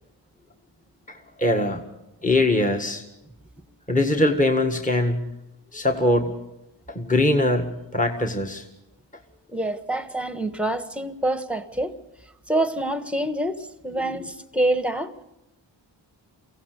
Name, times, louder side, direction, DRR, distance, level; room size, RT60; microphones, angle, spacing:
voice 1, 1.1-1.8 2.2-3.0 3.9-5.2 5.7-6.3 6.9-8.7 14.0-14.3, left 1 dB, 15° left, 3 dB, 1.8 m, -22 dB
voice 2, 9.5-11.9 12.5-15.2, right 1 dB, 5° right, 11 dB, 1.4 m, -26 dB
23.5 x 16.5 x 6.8 m, 0.91 s
cardioid pair, 60°, 46 cm